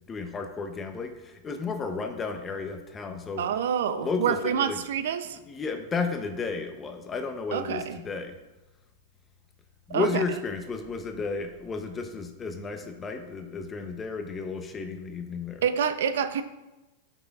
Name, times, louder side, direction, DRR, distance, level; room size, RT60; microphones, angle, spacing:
voice 1, 0.1-3.5 3.9-4.8 5.2-8.4 9.9-15.7, left 4 dB, 15° left, 6 dB, 0.7 m, -33 dB
voice 2, 3.4-5.4 7.5-8.0 9.9-10.2 15.6-16.4, right 8 dB, 80° right, 11 dB, 0.5 m, -27 dB
12.0 x 5.6 x 2.4 m, 1.0 s
supercardioid pair, 150°, 0 cm